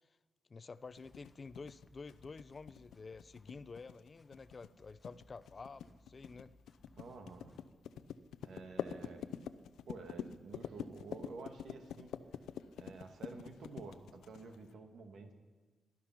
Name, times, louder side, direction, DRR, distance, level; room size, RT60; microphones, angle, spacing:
voice 1, 0.5-6.5, left 4 dB, 40° left, 16 dB, 0.5 m, -50 dB
sound 1, 1.0-14.7, left 9 dB, 90° left, 0.6 m, -46 dB
sound 2, 1.0-7.7, left 1 dB, 20° left, 1.4 m, -66 dB
voice 2, 7.0-7.5 8.4-9.3 9.9-12.1 12.8-15.3, right 4 dB, 70° right, 5 dB, 2.1 m, -50 dB
19.5 x 12.0 x 6.0 m, 1.4 s
cardioid pair, 75°, 0 cm